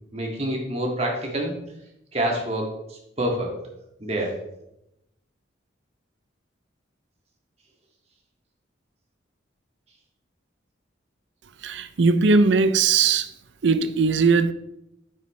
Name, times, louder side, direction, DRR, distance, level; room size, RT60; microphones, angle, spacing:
voice 1, 0.1-1.5 2.1-3.6 4.0-4.3, right 1 dB, 35° right, 1.9 m, -27 dB
voice 2, 11.6-13.3 13.6-14.5, right 4 dB, 70° right, 0.5 m, -19 dB
8.9 x 8.7 x 3.1 m
head